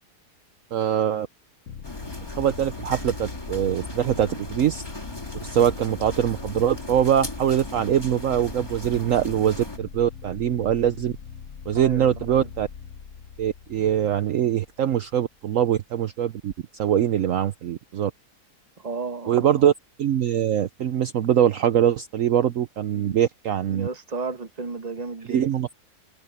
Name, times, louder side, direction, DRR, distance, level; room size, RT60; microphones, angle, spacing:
voice 1, 0.7-1.3 2.3-4.8 5.4-11.1 11.7-12.7 13.4-16.5 16.8-18.1 19.3-19.7 20.0-23.9 25.3-25.8, right 10 dB, 60° right, 1.1 m, -23 dB
sound 1, 1.7-15.1, left 7 dB, 55° left, 1.3 m, -41 dB
sound 2, 1.8-9.8, left 1 dB, 15° left, 3.7 m, -38 dB
voice 2, 11.7-12.5 18.8-19.7 22.9-23.2 23.7-25.5, right 4 dB, 25° right, 1.4 m, -34 dB
omnidirectional pair, 1.7 m